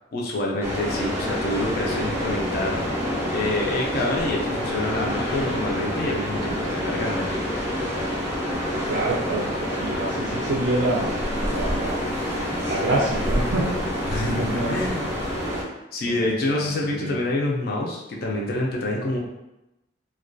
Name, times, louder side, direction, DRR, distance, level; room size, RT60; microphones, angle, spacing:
voice 1, 0.1-3.1 3.3-7.3 14.1-14.4 14.7-15.1 15.9-19.2, left 2 dB, 50° left, -1 dB, 0.4 m, -27 dB
sound 1, 0.6-15.6, equal, 15° right, 0.4 m, -27 dB
voice 2, 8.9-12.0 12.7-13.7 14.1-14.9 16.2-16.7 17.0-17.2, right 2 dB, 75° right, -3 dB, 0.4 m, -27 dB
2.2 x 2.2 x 2.5 m, 0.94 s
head